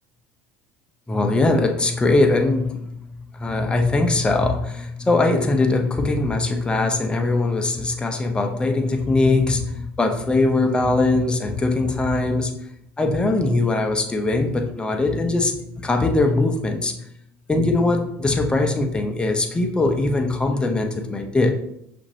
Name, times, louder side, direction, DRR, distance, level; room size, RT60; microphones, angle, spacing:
voice 1, 1.1-2.9 3.3-12.5 13.0-17.0 17.5-21.5, left 2 dB, 15° left, 3 dB, 0.7 m, -21 dB
5.8 x 2.6 x 2.8 m, 0.74 s
hypercardioid pair, 85°, 6 cm